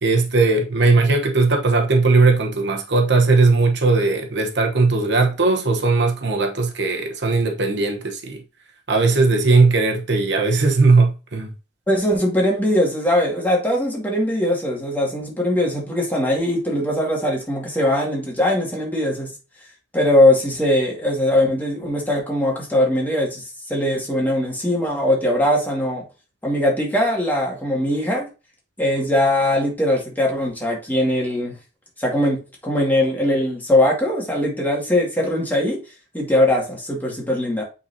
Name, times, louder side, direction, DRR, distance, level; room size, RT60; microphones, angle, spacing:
voice 1, 0.0-8.4 8.9-11.5, right 3 dB, 65° right, 1.0 m, -18 dB
voice 2, 11.9-19.3 19.9-26.0 26.4-28.3 28.8-31.5 32.0-35.8 36.1-37.6, left 1 dB, 10° left, 2.0 m, -20 dB
8.8 x 4.1 x 2.8 m
head